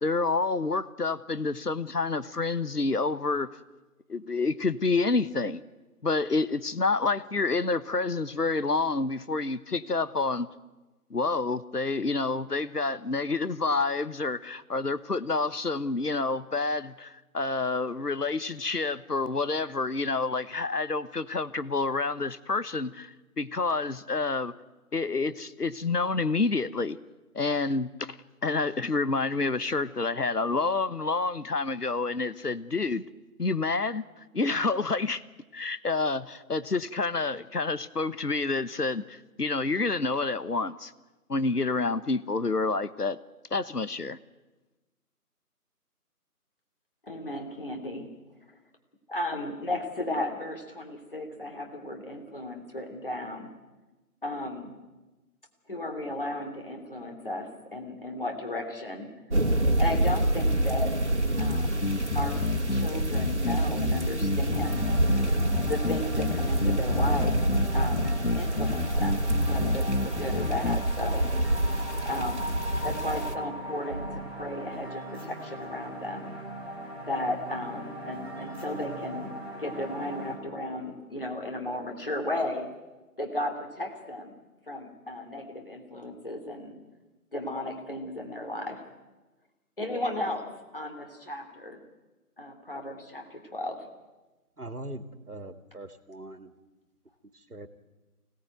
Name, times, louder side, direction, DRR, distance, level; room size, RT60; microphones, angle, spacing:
voice 1, 0.0-3.5 4.1-5.6 6.0-10.5 11.1-24.5 24.9-27.0 27.3-28.2 28.4-33.0 33.4-34.0 34.3-35.2 35.5-40.9 41.3-43.2 43.5-44.2, left 3 dB, 80° left, 14 dB, 1.2 m, -28 dB
voice 2, 47.0-48.1 49.1-53.5 54.2-54.8 55.7-59.1 59.8-61.0 61.4-61.8 62.1-62.4 62.7-64.9 65.7-67.4 67.7-71.3 72.0-72.4 72.8-76.3 77.0-82.7 83.2-84.3 84.7-86.7 87.3-88.8 89.8-90.5 90.7-91.8 92.4-93.9, left 1 dB, 35° left, 3 dB, 2.9 m, -35 dB
sound 1, 59.3-73.3, right 1 dB, 45° right, 1.8 m, -27 dB
sound 2, 61.4-70.8, left 3 dB, 60° left, 0.9 m, -30 dB
sound 3, 64.5-80.4, right 1 dB, 10° left, 2.1 m, -39 dB
voice 3, 94.6-96.5 97.3-97.7, right 1 dB, 75° right, 10 dB, 2.1 m, -41 dB
25.0 x 18.0 x 9.2 m, 1.1 s
figure-of-eight pair, 170°, 46 cm